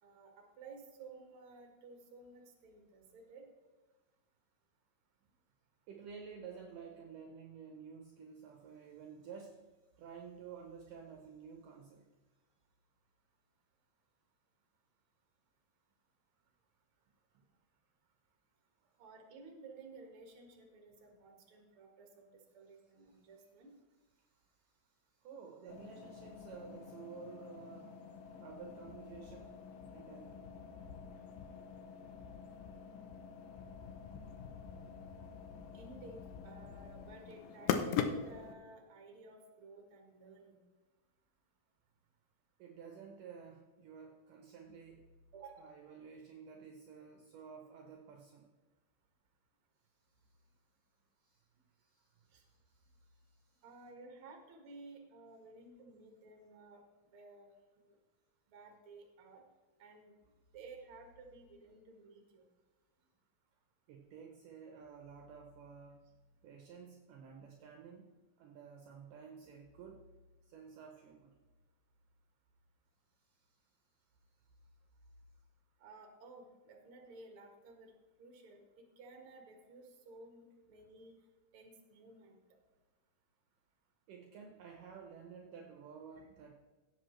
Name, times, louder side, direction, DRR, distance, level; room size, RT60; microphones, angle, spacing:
voice 1, 0.0-3.4 19.0-23.7 35.7-40.6 45.3-45.8 52.3-52.4 53.6-56.8 57.1-57.5 57.8-58.0 58.5-59.4 59.8-60.1 60.5-62.4 75.8-77.9 78.2-81.1 81.5-82.4, right 3 dB, 45° right, 2 dB, 2.0 m, -55 dB
voice 2, 5.9-9.6 10.0-12.1 17.3-17.4 18.8-18.9 23.1-23.2 24.2-28.0 28.4-29.6 29.9-30.4 42.6-45.1 45.6-48.5 51.2-51.4 51.8-53.6 63.9-66.0 66.4-70.1 70.5-71.3 73.2-73.6 84.1-86.6, right 6 dB, 70° right, 2 dB, 2.2 m, -52 dB
sound 1, 25.7-38.5, left 7 dB, 75° left, 2.2 m, -43 dB
16.5 x 7.7 x 3.2 m, 1.3 s
omnidirectional pair, 4.4 m